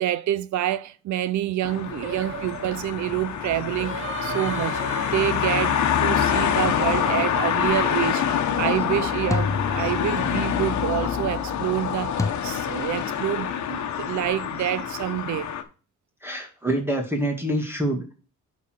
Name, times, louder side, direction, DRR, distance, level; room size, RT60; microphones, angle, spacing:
voice 1, 0.0-15.5, right 12 dB, 70° right, 0.7 m, -27 dB
sound 1, 1.6-15.6, left 8 dB, 70° left, 1.3 m, -26 dB
Singing, 2.0-7.3, right 6 dB, 45° right, 1.0 m, -38 dB
sound 2, 7.3-7.7 9.3-10.5 12.2-12.3, left 4 dB, 10° left, 0.6 m, -29 dB
voice 2, 16.2-18.1, right 1 dB, 10° right, 2.2 m, -26 dB
11.5 x 4.4 x 4.6 m
cardioid pair, 90°, 30 cm